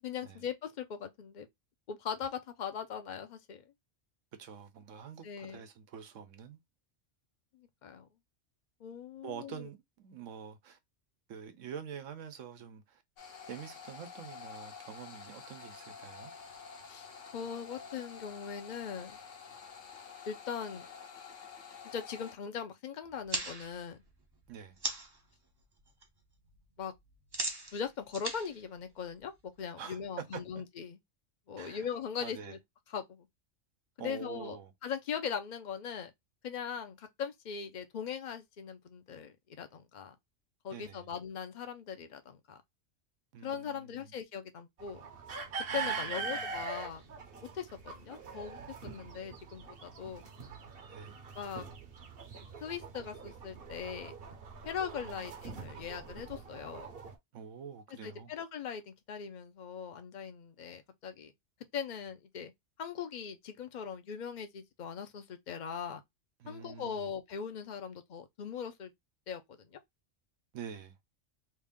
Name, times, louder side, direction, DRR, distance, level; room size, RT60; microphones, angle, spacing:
voice 1, 0.0-1.5 1.9-3.6 5.2-5.6 7.5-8.1 8.8-9.7 16.9-17.1 17.3-19.2 20.3-20.8 21.9-24.0 26.8-26.9 27.7-29.3 29.6-31.0 31.5-32.6 32.9-33.3 34.0-34.6 34.8-36.1 36.4-40.1 40.6-42.6 43.4-45.1 45.7-47.0 47.5-50.2 51.4-51.7 52.6-54.1 54.6-56.9 58.0-61.3 61.7-62.5 62.8-66.0 66.5-68.9 69.3-69.8, left 7 dB, 45° left, 0.7 m, -40 dB
voice 2, 4.4-6.6 9.2-10.8 11.3-13.0 13.5-16.3 24.5-24.8 29.8-30.4 31.6-31.9 32.2-32.6 34.0-34.7 40.7-41.1 43.3-44.1 45.7-46.5 50.9-51.2 55.2-55.3 57.3-58.3 66.4-67.1 70.5-71.0, right 7 dB, 85° right, 1.1 m, -46 dB
sound 1, 13.2-22.3, left 6 dB, 75° left, 1.3 m, -49 dB
sound 2, 23.1-25.2 25.6-26.1 26.3-29.6, right 2 dB, 30° right, 0.5 m, -39 dB
sound 3, 44.8-57.2, right 5 dB, 55° right, 0.9 m, -43 dB
3.2 x 2.5 x 3.5 m
omnidirectional pair, 1.3 m